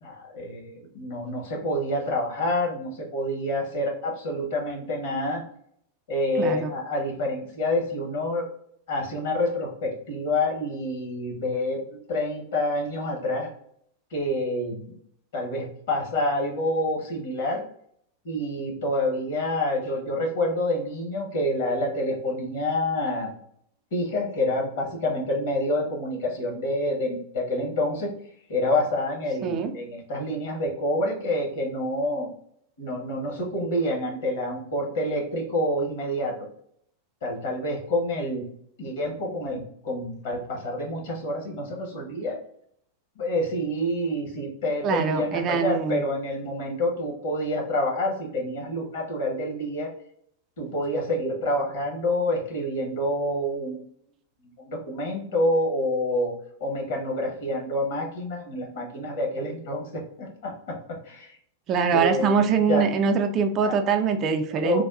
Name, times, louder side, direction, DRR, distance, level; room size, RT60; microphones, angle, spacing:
voice 1, 0.0-5.4 6.1-8.5 8.9-13.5 14.1-14.8 15.3-17.6 18.2-23.4 23.9-28.1 28.5-32.3 32.8-36.4 37.2-38.4 38.8-42.4 43.2-49.9 50.6-53.8 54.6-56.3 56.6-61.4 61.9-62.9 63.6-63.8 64.6-64.9, left 1 dB, 55° left, -1 dB, 1.1 m, -27 dB
voice 2, 6.4-6.7 29.4-29.7 44.8-46.0 61.7-64.9, right 6 dB, 35° right, 6 dB, 0.3 m, -23 dB
3.4 x 2.3 x 2.4 m, 0.68 s
figure-of-eight pair, 90°, 0 cm